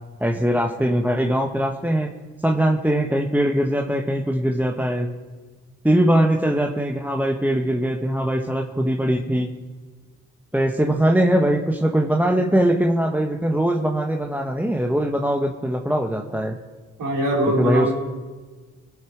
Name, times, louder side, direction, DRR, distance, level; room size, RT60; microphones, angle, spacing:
voice 1, 0.2-2.1 2.4-5.1 5.8-9.5 10.5-16.6 17.6-17.9, right 1 dB, 5° right, 2 dB, 1.4 m, -21 dB
voice 2, 17.0-17.9, equal, 75° right, -3 dB, 4.8 m, -22 dB
22.0 x 9.3 x 4.8 m, 1.4 s
supercardioid pair, 45°, 33 cm